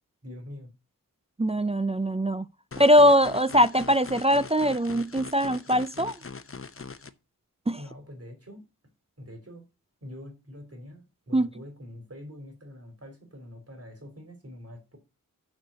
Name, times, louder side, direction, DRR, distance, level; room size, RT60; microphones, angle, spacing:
voice 1, 0.2-0.7 7.8-8.6 9.2-9.7 10.0-15.0, left 1 dB, 45° right, 3.1 m, -44 dB
voice 2, 1.4-2.4 2.8-6.2 7.7-7.8 11.3-11.5, equal, 20° right, 0.4 m, -21 dB
sound 1, 2.7-7.1, left 4 dB, 40° left, 0.8 m, -41 dB
6.6 x 6.3 x 6.8 m
wide cardioid pair, 70°, 34 cm